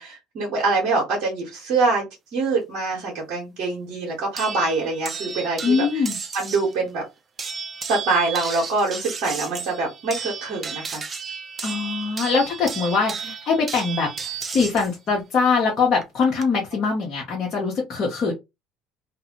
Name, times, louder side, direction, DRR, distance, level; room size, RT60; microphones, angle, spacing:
voice 1, 0.0-2.1 2.3-6.0 6.3-7.0 7.9-11.0, right 3 dB, 60° right, 1.3 m, -24 dB
sound 1, 4.4-6.7 7.4-14.9 16.0-16.4, right 5 dB, 30° right, 0.7 m, -33 dB
voice 2, 5.6-6.2 11.6-18.3, left 5 dB, 45° left, 1.0 m, -22 dB
2.6 x 2.6 x 2.9 m
hypercardioid pair, 65°, 0 cm